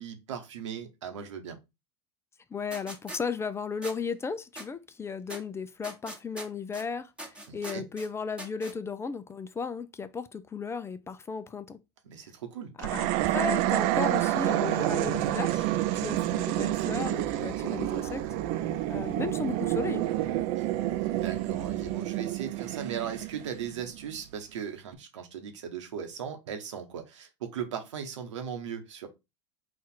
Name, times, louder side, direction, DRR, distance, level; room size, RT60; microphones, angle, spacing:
voice 1, 0.0-1.6 7.5-7.8 12.0-12.7 20.6-20.7 21.1-29.1, right 8 dB, 90° right, 1.1 m, -38 dB
voice 2, 2.5-11.8 12.8-15.7 15.9-18.3 18.6-20.1, left 5 dB, 15° left, 0.4 m, -35 dB
sound 1, 2.7-3.2 3.8-4.0 4.6-4.7 5.3-5.4 5.8-6.8 7.2-8.1 8.4-8.7, right 1 dB, 5° right, 1.1 m, -41 dB
sound 2, 12.8-24.2, right 15 dB, 60° right, 0.4 m, -29 dB
sound 3, 14.9-22.0, left 4 dB, 40° left, 1.2 m, -47 dB
4.3 x 2.5 x 4.3 m
hypercardioid pair, 105°, 15 cm